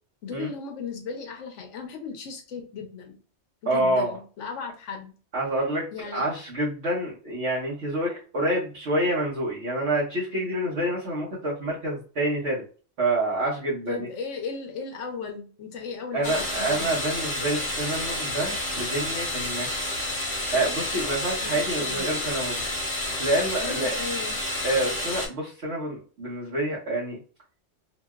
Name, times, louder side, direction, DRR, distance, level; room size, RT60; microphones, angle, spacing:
voice 1, 0.2-3.2 3.6-5.1 5.9-6.3 13.9-16.9 21.4-22.4 23.6-24.4, left 5 dB, 75° left, 4 dB, 0.9 m, -36 dB
voice 2, 3.7-4.2 5.3-5.9 6.1-12.6 13.0-14.1 16.1-19.7 20.5-22.6 23.2-23.9 24.6-27.2, right 1 dB, 60° right, -7 dB, 1.2 m, -27 dB
sound 1, 16.2-25.3, left 1 dB, 55° left, 1.1 m, -30 dB
2.9 x 2.7 x 2.3 m, 0.38 s
omnidirectional pair, 1.3 m